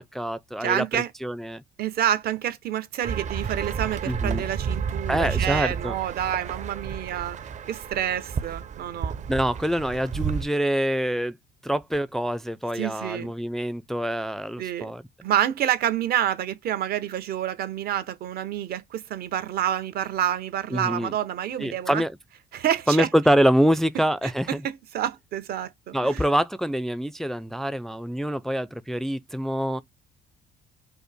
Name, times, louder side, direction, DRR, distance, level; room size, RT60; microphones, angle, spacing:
voice 1, 0.0-1.6 4.1-4.4 5.1-5.9 9.3-11.4 11.6-15.0 20.7-21.1 21.6-22.1 22.9-24.6 25.9-29.8, equal, ahead, 0.4 m, -25 dB
voice 2, 0.6-1.1 1.8-7.4 7.7-9.2 12.7-13.3 14.6-14.9 15.2-22.0 22.5-23.1 24.2-26.2, right 11 dB, 65° right, 1.1 m, -28 dB
sound 1, 3.0-10.5, right 6 dB, 45° right, 0.8 m, -31 dB
5.4 x 2.0 x 4.3 m
cardioid pair, 110°, 17 cm